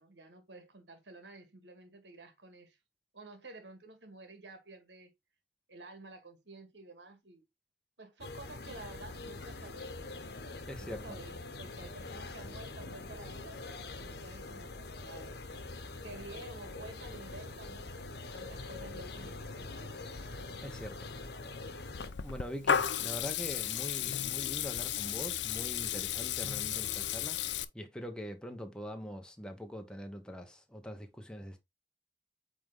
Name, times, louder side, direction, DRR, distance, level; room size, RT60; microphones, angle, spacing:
voice 1, 0.0-2.8 3.1-5.1 5.7-7.5 8.0-10.0 10.8-15.4 16.0-18.1 18.3-20.0, right 2 dB, 80° right, 2.0 m, -51 dB
sound 1, 8.2-22.1, left 3 dB, 65° left, 1.2 m, -44 dB
voice 2, 10.7-11.2 20.6-21.1 22.2-27.4 27.7-31.6, equal, 5° left, 1.2 m, -43 dB
Water tap faucet / Liquid, 21.9-27.6, left 9 dB, 85° left, 0.7 m, -34 dB
8.7 x 3.7 x 3.7 m
head